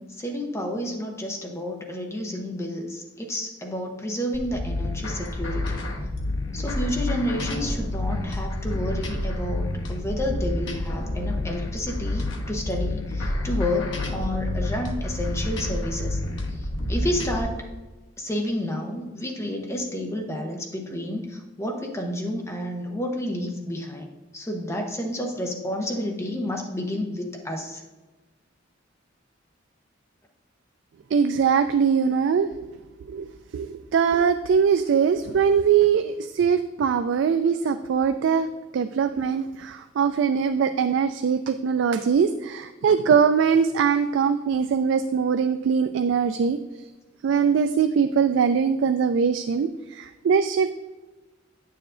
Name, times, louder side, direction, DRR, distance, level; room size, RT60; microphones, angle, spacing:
voice 1, 0.0-5.8 6.5-16.2 16.5-17.7 18.2-24.1 24.3-27.8, left 1 dB, 15° left, 2 dB, 0.8 m, -30 dB
sound 1, 4.3-17.4, left 1 dB, 65° left, 1.0 m, -29 dB
voice 2, 31.1-32.5 33.1-33.3 33.5-38.5 38.7-46.6 47.2-49.7 50.0-50.7, right 6 dB, 65° right, 9 dB, 0.3 m, -22 dB
9.2 x 6.8 x 2.5 m, 1.2 s
head